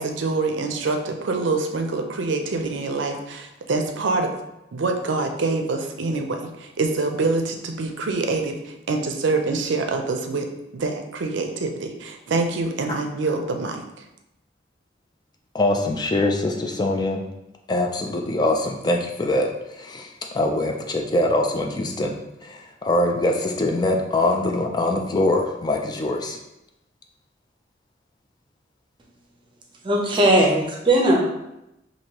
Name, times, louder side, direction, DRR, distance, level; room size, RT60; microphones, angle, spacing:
voice 1, 0.0-4.3 4.7-10.5 10.7-13.8, right 3 dB, 75° right, 4 dB, 0.5 m, -25 dB
voice 2, 15.5-17.2 17.7-26.4, left 1 dB, 20° left, 2 dB, 0.3 m, -23 dB
voice 3, 29.8-31.3, right 1 dB, 25° right, -1 dB, 0.6 m, -18 dB
4.5 x 2.6 x 2.9 m, 0.89 s
head